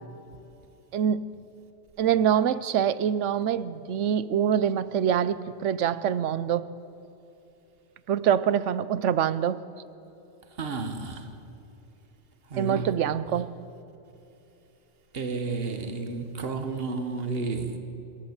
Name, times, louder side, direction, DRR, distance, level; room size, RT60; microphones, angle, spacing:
voice 1, 0.9-1.4 2.0-6.7 8.1-9.6 12.6-13.6, right 9 dB, 85° right, 1.0 m, -25 dB
voice 2, 10.6-11.2 12.5-12.8 15.1-17.8, right 4 dB, 55° right, 1.6 m, -31 dB
26.5 x 14.5 x 8.1 m
omnidirectional pair, 1.2 m